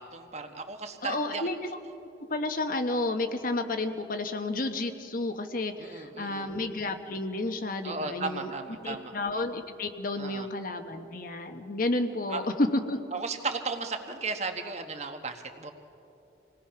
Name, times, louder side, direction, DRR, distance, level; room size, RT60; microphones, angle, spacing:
voice 1, 0.0-1.5 5.8-6.5 7.8-9.1 10.2-10.5 12.3-12.4 13.1-15.7, right 4 dB, 40° right, 6 dB, 1.3 m, -35 dB
voice 2, 1.0-1.6 2.2-8.5 8.8-13.0, left 2 dB, 50° left, 6 dB, 1.1 m, -31 dB
27.0 x 18.5 x 5.8 m, 2.9 s
head